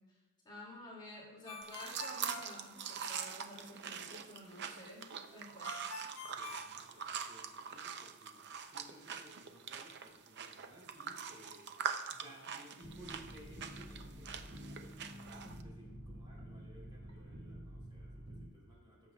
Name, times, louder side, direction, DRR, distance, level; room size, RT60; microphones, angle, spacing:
voice 1, 0.4-5.1 5.3-5.8, equal, 20° left, -5 dB, 2.4 m, -51 dB
Ringtone, 1.5-3.4 5.6-7.5, left 2 dB, 80° left, 1.4 m, -48 dB
sound 1, 1.6-15.6, right 7 dB, 55° right, 0.6 m, -44 dB
voice 2, 6.2-11.7 12.1-19.1, equal, 20° right, -3 dB, 3.5 m, -59 dB
sound 2, 12.8-18.5, equal, 80° right, 2.6 m, -50 dB
17.0 x 7.5 x 2.3 m, 1.2 s
head